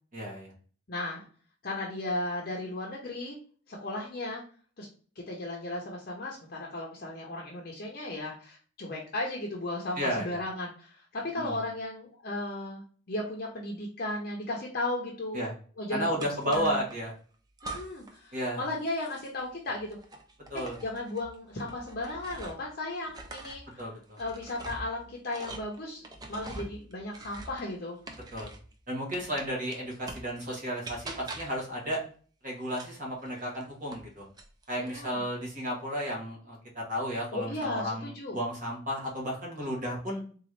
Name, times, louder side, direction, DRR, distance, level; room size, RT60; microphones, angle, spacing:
voice 1, 0.1-0.5 10.0-10.4 11.4-11.6 15.3-15.5 15.9-17.1 18.3-18.6 20.5-20.8 23.8-24.2 28.3-28.5 28.9-32.0 32.4-34.2 34.7-40.2, equal, 40° right, -2 dB, 1.1 m, -33 dB
voice 2, 0.9-1.3 1.6-3.4 3.7-4.4 4.8-4.9 5.2-12.8 13.1-15.5 15.8-16.8 17.6-20.0 20.5-23.8 24.2-26.0 26.3-28.0 34.8-35.2 37.3-38.4, left 2 dB, 45° left, -1 dB, 0.6 m, -35 dB
sound 1, 16.2-17.0 17.6-18.2 18.5-22.7 23.1-28.7 29.1-30.4 30.8-31.7 32.7-34.1 34.4-35.0, right 2 dB, 20° right, 0.4 m, -44 dB
3.9 x 2.4 x 3.0 m, 0.42 s
head